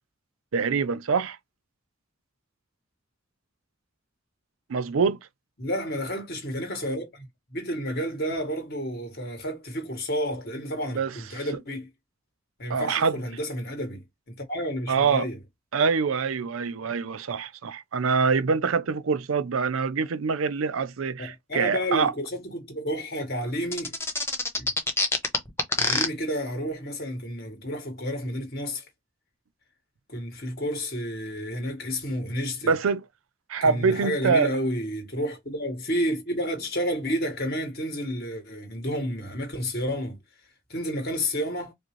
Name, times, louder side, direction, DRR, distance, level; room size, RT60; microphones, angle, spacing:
voice 1, 0.5-1.4 4.7-5.2 10.9-11.1 12.7-13.2 14.9-15.3 15.7-22.1 32.6-33.0 33.5-34.5, right 5 dB, 85° right, 0.5 m, -25 dB
voice 2, 5.6-11.9 12.6-15.4 21.2-23.9 24.6-24.7 25.8-28.8 30.1-32.7 33.6-40.2 40.7-41.7, equal, 50° left, 1.8 m, -31 dB
sound 1, 23.7-26.1, left 2 dB, 10° left, 1.0 m, -24 dB
5.0 x 2.0 x 3.0 m
head